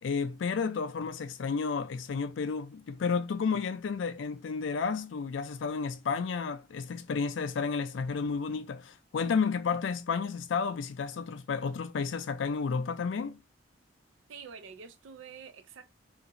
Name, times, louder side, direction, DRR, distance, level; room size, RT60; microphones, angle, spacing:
voice 1, 0.0-13.4, left 5 dB, 80° left, 0.4 m, -32 dB
voice 2, 14.3-15.9, right 6 dB, 85° right, 0.4 m, -47 dB
2.8 x 2.5 x 2.5 m
head